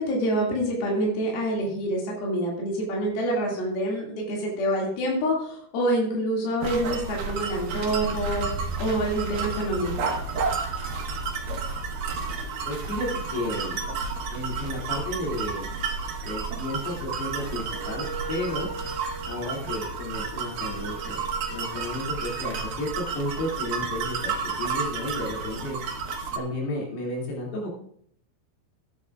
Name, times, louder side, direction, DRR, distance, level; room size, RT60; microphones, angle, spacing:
voice 1, 0.0-10.1, right 1 dB, 70° left, -3 dB, 4.2 m, -27 dB
sound 1, 6.6-26.4, right 4 dB, 65° right, 2.6 m, -31 dB
voice 2, 12.7-13.8 14.3-15.7 16.2-18.7 19.3-25.8 26.4-27.7, left 1 dB, 85° left, -3 dB, 4.7 m, -33 dB
Wind instrument woodwind instrument, 17.6-24.3, right 3 dB, 90° right, 3.3 m, -42 dB
16.5 x 9.7 x 2.4 m, 0.64 s
omnidirectional pair, 4.6 m